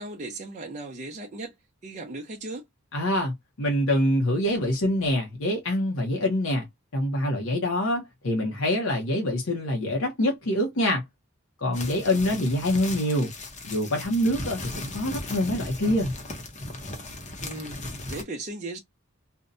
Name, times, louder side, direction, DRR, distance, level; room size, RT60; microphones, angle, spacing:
voice 1, 0.0-1.5 1.8-2.6 17.4-17.8 18.1-18.8, right 2 dB, 35° right, 0.5 m, -36 dB
voice 2, 2.9-6.7 6.9-11.0 11.6-13.3 13.6-16.1, left 1 dB, 70° left, 0.7 m, -25 dB
sound 1, 11.7-18.2, left 2 dB, 35° left, 0.7 m, -37 dB
2.6 x 2.1 x 2.4 m
head